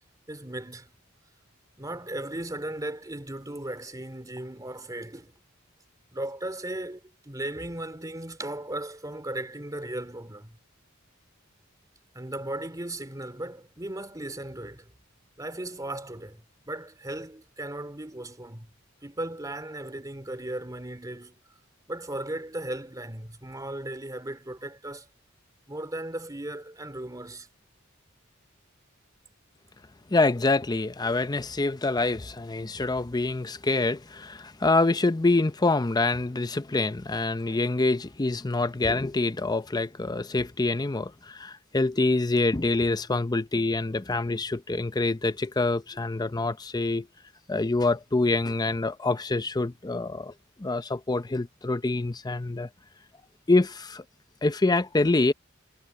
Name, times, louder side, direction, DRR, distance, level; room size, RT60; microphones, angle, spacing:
voice 1, 0.3-0.9 1.8-5.3 6.1-10.6 12.1-14.9 15.4-18.7 19.0-21.4 21.9-25.1 25.7-27.5, right 1 dB, 20° right, 2.7 m, -36 dB
voice 2, 30.1-47.1 47.5-50.3 50.6-52.7 53.5-54.0 54.4-55.3, left 2 dB, 20° left, 0.6 m, -26 dB
head